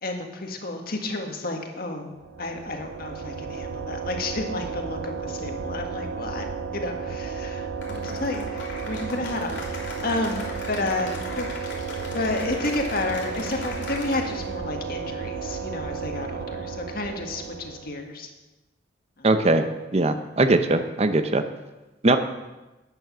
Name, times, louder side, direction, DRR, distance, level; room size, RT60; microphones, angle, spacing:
voice 1, 0.0-2.1 2.4-6.5 6.7-11.5 12.1-18.3 19.2-19.3, left 2 dB, 55° left, 3 dB, 1.7 m, -31 dB
sound 1, 2.2-18.0, right 5 dB, 70° right, 0.7 m, -33 dB
Cheering / Applause, 7.8-14.5, left 2 dB, 75° left, 3.4 m, -39 dB
voice 2, 19.2-19.6 19.9-21.4 22.0-22.2, right 2 dB, 35° right, 8 dB, 0.7 m, -20 dB
11.0 x 9.3 x 6.2 m, 1.1 s
head